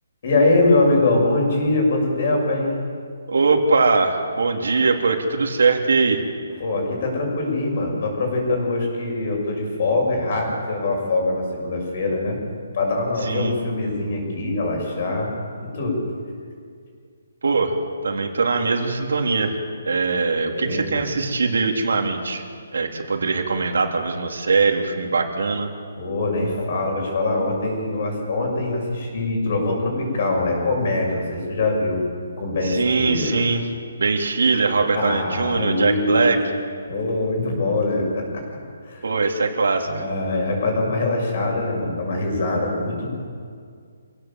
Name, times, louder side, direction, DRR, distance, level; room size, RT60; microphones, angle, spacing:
voice 1, 0.2-2.7 6.6-12.4 12.7-15.3 15.6-16.0 20.5-20.8 26.0-32.0 32.4-33.4 34.9-36.4 36.9-38.4 38.9-39.1 39.8-43.1, left 2 dB, 40° left, 1 dB, 6.9 m, -23 dB
voice 2, 3.3-6.2 13.2-13.5 17.4-17.7 18.0-19.6 19.8-22.4 22.7-25.7 32.6-33.7 34.0-36.4 39.0-40.0, right 4 dB, 75° right, 2 dB, 3.2 m, -21 dB
26.5 x 17.0 x 7.5 m, 2.2 s
hypercardioid pair, 175°, 0 cm